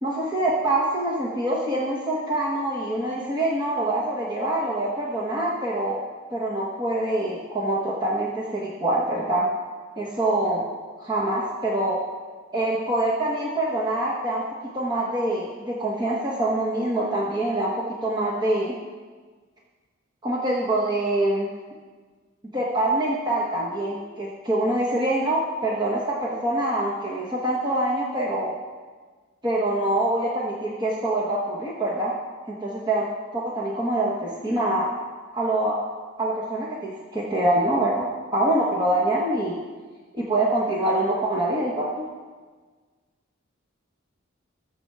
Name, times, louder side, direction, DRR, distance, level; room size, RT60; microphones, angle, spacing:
voice 1, 0.0-6.0 6.3-9.5 10.0-10.6 11.0-12.0 12.5-14.4 14.7-18.8 20.2-21.5 22.5-28.5 29.4-32.1 32.5-33.0 33.3-34.9 35.3-35.8 36.2-39.6 40.1-42.0, right 1 dB, 20° right, -4 dB, 1.3 m, -25 dB
19.5 x 7.1 x 4.8 m, 1.5 s
head